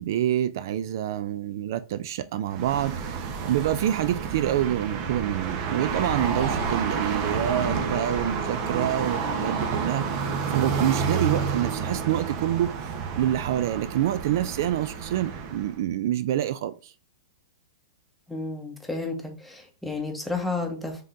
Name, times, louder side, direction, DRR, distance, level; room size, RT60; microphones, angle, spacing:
voice 1, 0.0-16.9, right 12 dB, 60° right, 0.3 m, -27 dB
sound 1, 2.5-15.8, right 5 dB, 40° right, 0.8 m, -29 dB
voice 2, 18.3-21.0, left 3 dB, ahead, 1.1 m, -32 dB
5.3 x 3.8 x 2.5 m
hypercardioid pair, 130°, 2 cm